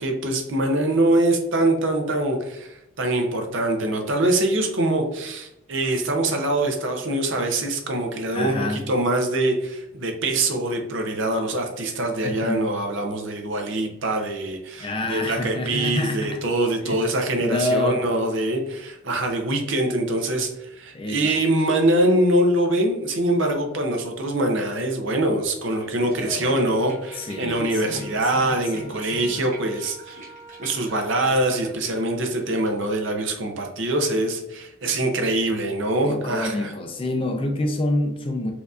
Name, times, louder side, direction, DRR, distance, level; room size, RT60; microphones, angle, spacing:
voice 1, 0.0-30.2 30.6-36.7, right 1 dB, 60° right, 3 dB, 0.6 m, -24 dB
voice 2, 8.3-8.9 12.2-12.7 14.8-16.5 16.8-17.0 17.4-18.0 20.9-21.4 26.0-26.8 27.2-29.4 36.0-38.5, left 1 dB, 25° left, 4 dB, 0.4 m, -28 dB
sound 1, 25.6-32.9, right 1 dB, 35° right, 1.1 m, -46 dB
Wind instrument woodwind instrument, 26.7-31.6, right 3 dB, 70° left, 0.7 m, -46 dB
4.4 x 2.6 x 2.4 m, 0.87 s
head